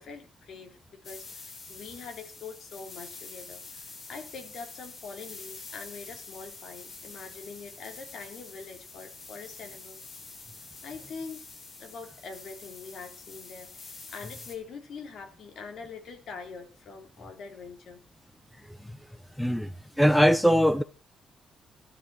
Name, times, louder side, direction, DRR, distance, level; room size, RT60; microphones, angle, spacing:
voice 1, 0.0-10.1 10.8-11.5 11.8-18.0, left 5 dB, 55° left, 4.0 m, -44 dB
sound 1, 1.0-14.6, left 4 dB, 35° left, 4.6 m, -46 dB
voice 2, 19.4-19.7 20.0-20.8, equal, ahead, 0.8 m, -21 dB
16.5 x 13.0 x 6.1 m
cardioid pair, 160°, 0 cm